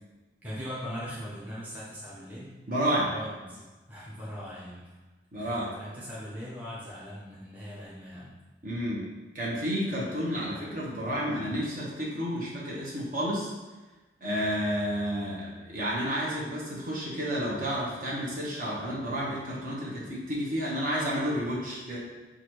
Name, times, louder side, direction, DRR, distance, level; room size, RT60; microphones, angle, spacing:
voice 1, 0.4-2.5 3.1-5.0 5.4-8.3, equal, 10° right, -9 dB, 0.7 m, -40 dB
voice 2, 2.7-3.1 5.3-5.7 8.6-9.0 9.3-13.5 14.2-22.0, equal, 45° right, -6 dB, 1.1 m, -31 dB
6.1 x 2.5 x 3.0 m, 1.2 s
head